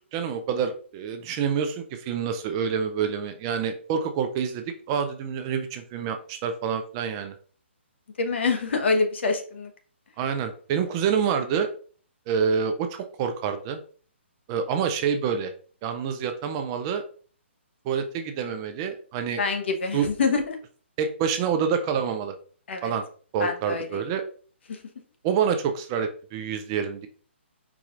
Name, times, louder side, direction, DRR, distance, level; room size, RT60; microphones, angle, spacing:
voice 1, 0.1-7.3 10.2-11.7 12.3-13.8 14.5-15.5 15.8-17.0 17.9-19.4 19.9-20.1 21.0-22.3 22.8-23.0 23.3-24.2 25.2-27.1, right 7 dB, 20° right, 7 dB, 0.4 m, -27 dB
voice 2, 8.2-9.7 19.4-20.6 22.7-22.9 23.4-24.1 24.7-24.8, left 4 dB, 65° left, 5 dB, 1.1 m, -26 dB
4.7 x 4.1 x 2.5 m, 0.42 s
hypercardioid pair, 160°, 7 cm